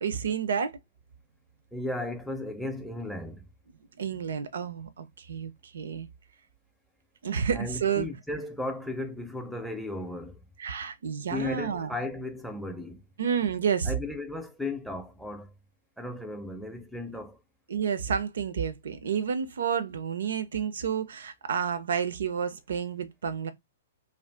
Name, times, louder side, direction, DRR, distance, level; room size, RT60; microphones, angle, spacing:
voice 1, 0.0-0.8 4.0-6.1 7.2-8.1 10.6-11.9 13.2-13.9 17.7-23.5, right 7 dB, 65° right, 0.4 m, -30 dB
voice 2, 1.7-3.5 7.5-10.4 11.3-13.0 13.9-15.5 16.0-17.4, left 2 dB, ahead, 0.6 m, -35 dB
2.5 x 2.3 x 3.3 m
figure-of-eight pair, 115°, 0 cm